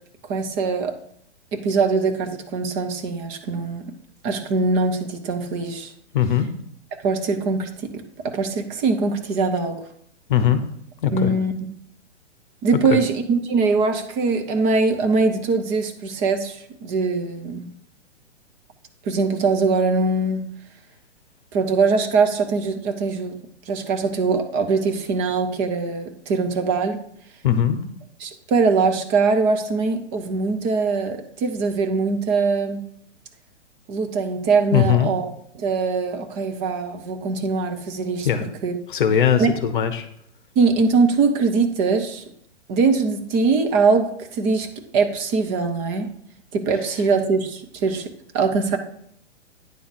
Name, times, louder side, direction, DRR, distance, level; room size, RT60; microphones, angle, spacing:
voice 1, 0.2-1.0 1.5-3.9 4.2-5.9 6.9-9.8 11.1-11.5 12.6-17.7 19.0-20.5 21.5-23.4 23.7-27.0 28.2-32.8 33.9-35.3 35.6-38.3 38.6-38.7 39.4-39.5 40.6-42.2 42.7-44.7 44.9-46.1 46.5-48.8, right 4 dB, 20° right, 5 dB, 0.7 m, -22 dB
voice 2, 6.1-6.5 10.3-10.6 11.0-11.3 12.9-13.0 27.4-27.8 34.7-35.1 38.2-38.5 38.9-40.1, left 9 dB, 45° left, 10 dB, 0.9 m, -19 dB
9.5 x 3.9 x 6.1 m, 0.67 s
figure-of-eight pair, 120°, 36 cm